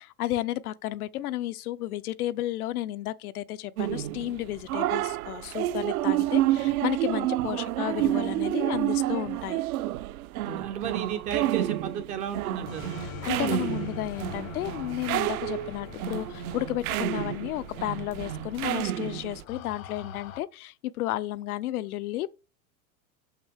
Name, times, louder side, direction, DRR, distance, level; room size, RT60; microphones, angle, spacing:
voice 1, 0.0-9.6 13.0-22.3, left 14 dB, 85° left, 0.6 m, -32 dB
sound 1, 3.8-19.4, right 15 dB, 80° right, 0.6 m, -29 dB
voice 2, 10.4-13.0, right 8 dB, 20° right, 0.3 m, -33 dB
sound 2, 12.7-20.4, left 8 dB, 70° left, 1.0 m, -43 dB
6.3 x 5.8 x 3.5 m
supercardioid pair, 140°, 43 cm